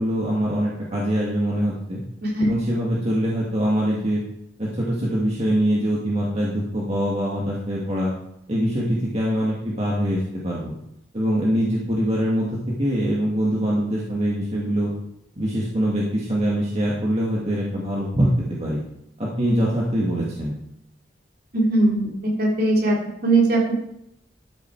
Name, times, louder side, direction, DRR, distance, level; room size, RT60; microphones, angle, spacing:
voice 1, 0.0-2.0 2.4-4.2 4.6-8.1 8.5-10.7 11.1-12.5 12.8-14.9 15.4-18.8 19.2-20.6, equal, 35° right, -5 dB, 2.0 m, -23 dB
voice 2, 21.5-22.1 22.4-22.9 23.2-23.7, right 2 dB, 55° right, -2 dB, 3.3 m, -19 dB
12.5 x 7.4 x 4.6 m, 0.78 s
head